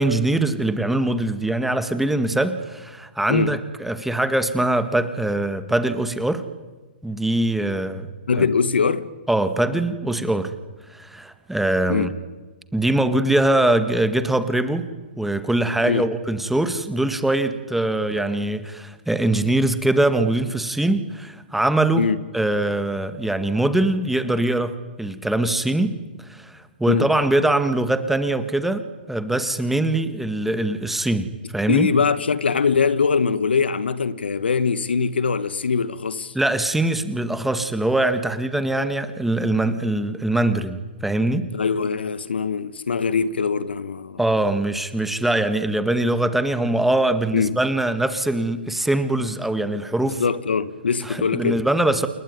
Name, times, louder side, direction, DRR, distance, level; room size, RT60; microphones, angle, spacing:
voice 1, 0.0-6.4 7.0-8.1 8.4-8.5 9.3-10.5 10.9-12.1 12.7-14.9 15.2-22.1 22.3-26.0 26.2-28.8 29.1-31.9 36.3-41.5 44.2-50.2 51.0-52.1, right 1 dB, 5° right, 1.8 m, -22 dB
voice 2, 8.3-9.1 11.9-12.1 15.8-16.1 22.0-22.2 26.9-27.1 31.7-36.3 41.5-44.2 47.3-47.5 50.2-51.6, left 5 dB, 85° left, 1.5 m, -22 dB
28.5 x 20.5 x 9.7 m
hypercardioid pair, 125°, 6 cm